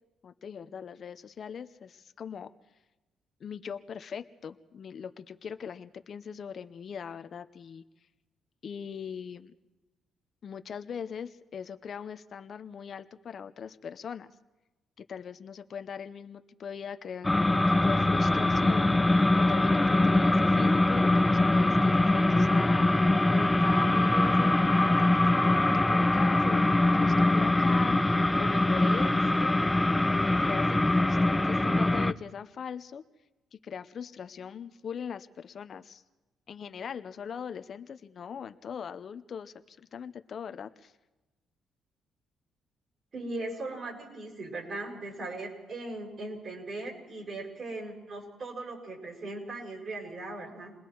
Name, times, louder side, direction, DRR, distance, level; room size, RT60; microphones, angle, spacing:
voice 1, 0.2-2.5 3.4-7.8 8.6-9.5 10.4-14.3 15.0-19.0 19.3-29.6 30.3-33.0 33.5-36.0 36.5-40.9, left 7 dB, 55° left, 10 dB, 0.9 m, -40 dB
sound 1, 17.2-32.1, left 2 dB, 10° left, 0.7 m, -23 dB
voice 2, 43.1-50.7, right 2 dB, 50° right, 1 dB, 6.9 m, -39 dB
29.0 x 21.0 x 4.7 m, 1.1 s
cardioid pair, 90°, 0 cm